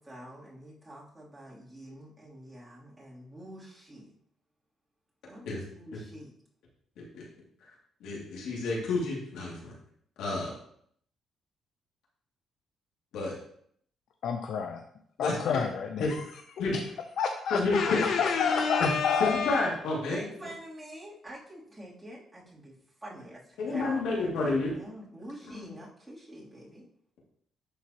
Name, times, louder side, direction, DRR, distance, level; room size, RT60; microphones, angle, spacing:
voice 1, 0.0-4.1 5.3-6.3 20.1-24.1 24.7-26.9, right 1 dB, 10° right, -8 dB, 2.9 m, -46 dB
voice 2, 8.0-9.8 10.2-10.5 13.1-13.3 15.2-15.6 16.0-16.1 16.6-16.8 17.5-18.0 18.8-18.9 19.2-20.2 23.6-24.7 25.5-25.7, left 3 dB, 85° left, -4 dB, 2.3 m, -30 dB
voice 3, 14.2-14.8 15.2-16.2 16.6-16.8 17.2-19.7, left 6 dB, 70° left, 5 dB, 0.5 m, -28 dB
11.0 x 4.1 x 2.9 m, 0.66 s
cardioid pair, 90°, 0 cm